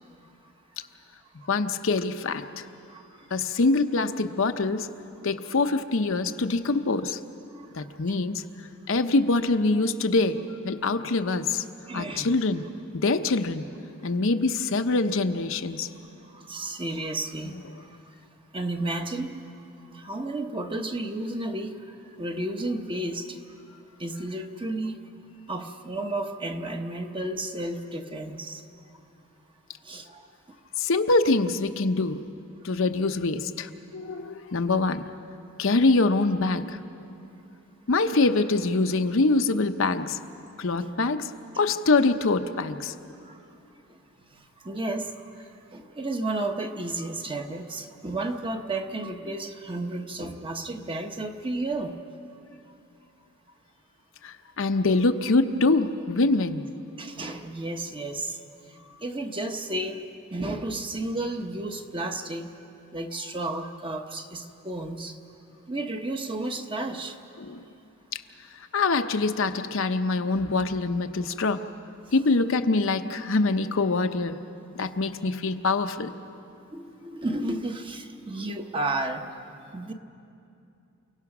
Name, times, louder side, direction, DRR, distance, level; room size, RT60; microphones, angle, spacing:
voice 1, 1.5-2.6 3.3-4.9 5.2-7.2 7.7-8.4 8.9-11.6 11.9-12.6 13.0-13.7 14.0-15.9 30.8-32.2 32.6-35.0 35.6-36.8 37.9-40.2 40.6-41.3 41.6-42.9 54.2-56.7 67.4-67.6 68.1-68.2 68.7-71.6 72.1-74.4 74.8-76.1, left 3 dB, 60° left, 7 dB, 0.7 m, -24 dB
voice 2, 2.9-3.3 7.5-7.8 8.1-8.2 11.9-12.3 16.3-17.9 18.5-19.3 19.9-23.4 24.0-25.0 25.5-28.6 29.8-30.2 43.2-43.4 44.3-45.4 45.7-51.9 57.0-58.4 59.0-60.0 60.3-62.5 62.9-65.2 65.7-67.2 76.7-79.2 79.7-79.9, right 2 dB, 25° right, 5 dB, 1.0 m, -32 dB
29.0 x 17.0 x 6.0 m, 2.7 s
head